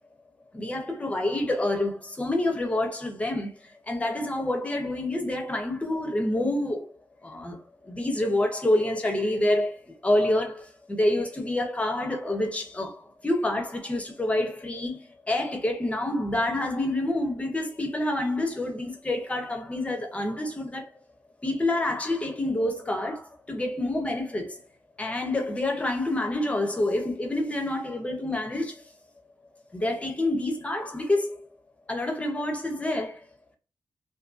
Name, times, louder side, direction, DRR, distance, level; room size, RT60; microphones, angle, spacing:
voice 1, 0.5-3.5 3.9-6.9 7.2-7.6 7.8-9.7 10.0-15.0 15.3-20.9 21.4-24.6 25.0-28.8 29.7-31.4 31.9-33.2, left 1 dB, 20° left, 0.5 m, -27 dB
2.5 x 2.5 x 2.4 m
wide cardioid pair, 155°, 7 cm